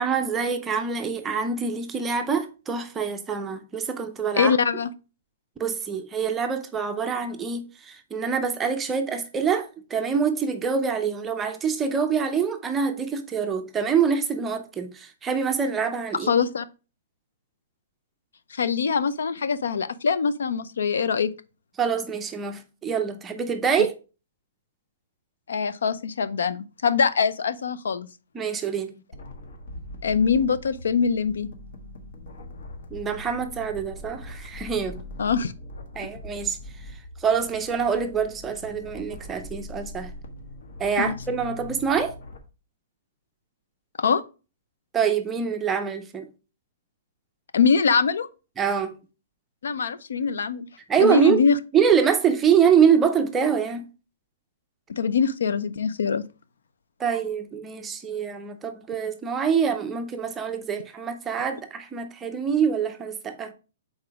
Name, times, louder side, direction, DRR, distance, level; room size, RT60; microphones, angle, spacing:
voice 1, 0.0-4.6 5.6-16.3 21.8-23.9 28.3-28.9 32.9-35.0 36.0-36.6 37.2-40.1 40.8-42.1 44.9-46.3 48.6-49.0 50.9-51.4 51.7-53.8 57.0-63.5, right 6 dB, 10° right, 0.5 m, -25 dB
voice 2, 4.4-4.9 16.3-16.7 18.5-21.3 25.5-28.1 30.0-31.5 35.2-35.5 41.0-41.1 44.0-44.2 47.5-48.3 49.6-50.7 51.0-51.6 54.9-56.2, left 6 dB, 90° left, 0.5 m, -23 dB
sound 1, 29.1-42.4, left 1 dB, 60° left, 1.3 m, -41 dB
4.9 x 4.1 x 4.7 m
hypercardioid pair, 170°, 0 cm